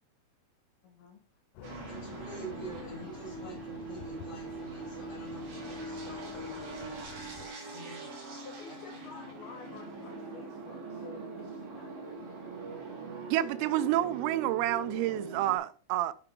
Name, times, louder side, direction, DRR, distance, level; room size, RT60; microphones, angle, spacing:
voice 1, 0.8-1.2 1.5-1.8 8.4-12.8 13.3-13.4, left 4 dB, 60° left, 3.2 m, -51 dB
sound 1, 1.6-7.5, left 9 dB, 85° left, 3.3 m, -49 dB
sound 2, 1.6-15.6, right 3 dB, 50° right, 3.6 m, -42 dB
voice 2, 1.9-7.1 7.6-8.2 8.7-9.3, right 2 dB, 5° left, 3.5 m, -47 dB
voice 3, 13.3-16.1, right 14 dB, 85° right, 3.4 m, -29 dB
9.2 x 6.9 x 3.5 m
omnidirectional pair, 6.0 m